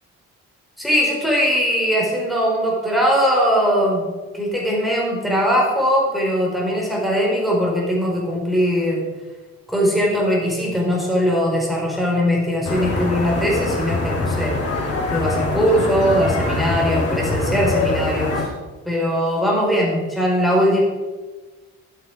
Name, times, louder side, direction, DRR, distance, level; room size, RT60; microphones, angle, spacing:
voice 1, 0.8-4.1 4.3-9.0 9.7-14.5 15.1-18.5 18.8-20.8, equal, ahead, -3 dB, 4.4 m, -20 dB
sound 1, 12.6-18.4, left 2 dB, 55° left, 3.2 m, -23 dB
12.0 x 8.7 x 4.7 m, 1.3 s
cardioid pair, 90°, 30 cm